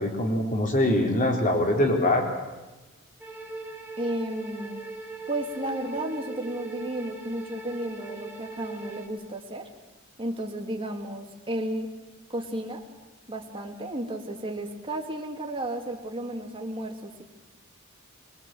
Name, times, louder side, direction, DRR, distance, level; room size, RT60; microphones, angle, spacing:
voice 1, 0.0-2.3, left 1 dB, 40° left, 1 dB, 4.1 m, -23 dB
sound 1, 3.2-9.1, right 3 dB, 10° right, 2.8 m, -40 dB
voice 2, 4.0-4.8 5.3-9.7 10.2-11.9 12.3-12.8 13.3-17.2, right 1 dB, 25° right, 2 dB, 2.6 m, -33 dB
23.0 x 22.5 x 7.8 m, 1.1 s
head